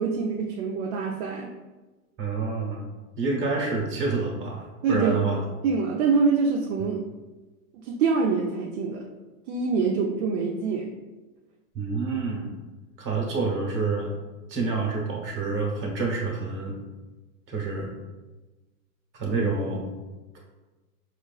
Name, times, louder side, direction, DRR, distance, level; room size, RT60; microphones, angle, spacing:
voice 1, 0.0-1.5 4.8-5.2 5.6-7.0 7.7-9.0 9.5-10.9, right 4 dB, 50° right, -1 dB, 0.5 m, -25 dB
voice 2, 2.2-2.8 3.2-5.4 11.7-12.6 13.0-14.1 14.5-16.8 17.5-17.9 19.1-19.8 20.3-20.4, right 4 dB, 25° right, -2 dB, 1.0 m, -28 dB
4.7 x 2.4 x 2.3 m, 1.2 s
hypercardioid pair, 115°, 45 cm